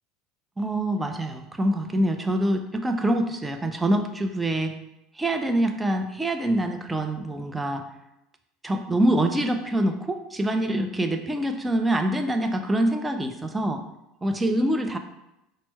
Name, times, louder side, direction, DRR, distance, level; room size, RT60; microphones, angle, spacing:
voice 1, 0.6-4.7 5.2-7.8 8.6-13.8 14.2-15.0, right 1 dB, 15° right, 6 dB, 0.4 m, -25 dB
4.3 x 2.1 x 4.2 m, 0.90 s
hypercardioid pair, 75°, 0 cm